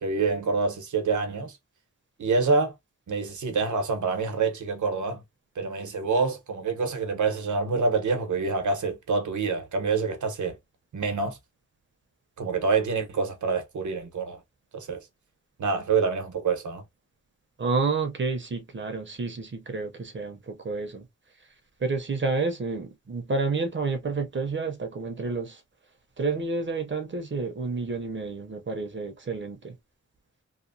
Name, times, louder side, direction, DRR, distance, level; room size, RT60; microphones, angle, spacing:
voice 1, 0.0-1.6 2.2-2.7 3.1-5.2 5.6-10.5 10.9-11.4 12.4-14.4 14.7-15.0 15.6-16.8, right 4 dB, 90° right, 0.8 m, -26 dB
voice 2, 17.6-21.0 21.8-25.6 26.2-29.7, right 4 dB, 40° right, 0.6 m, -30 dB
2.9 x 2.0 x 2.6 m
wide cardioid pair, 115°, 29 cm